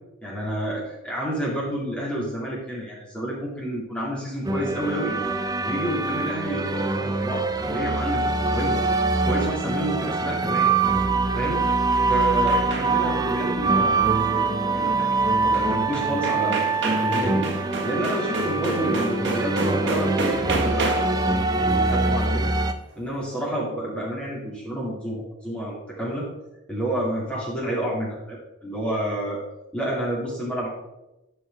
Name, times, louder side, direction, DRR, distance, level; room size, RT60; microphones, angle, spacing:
voice 1, 0.2-5.2 5.6-8.8 9.1-10.7 11.3-11.7 12.1-17.4 17.8-21.0 21.6-22.5 23.0-26.3 26.7-29.4 29.7-30.7, right 1 dB, 5° left, -6 dB, 2.8 m, -29 dB
sound 1, 4.5-22.7, right 3 dB, 20° right, 0.4 m, -24 dB
sound 2, 11.4-13.2 15.5-15.6 15.9-21.3, right 2 dB, 60° right, 1.3 m, -30 dB
11.5 x 4.6 x 3.7 m, 0.97 s
head